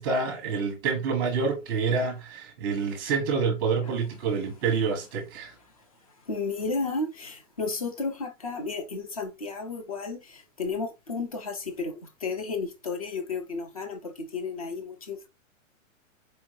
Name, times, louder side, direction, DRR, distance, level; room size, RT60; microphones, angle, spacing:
voice 1, 0.0-5.5, right 5 dB, 20° right, 0.8 m, -27 dB
voice 2, 6.3-15.3, left 4 dB, 30° left, 0.4 m, -33 dB
4.4 x 2.5 x 3.0 m
hypercardioid pair, 180°, 39 cm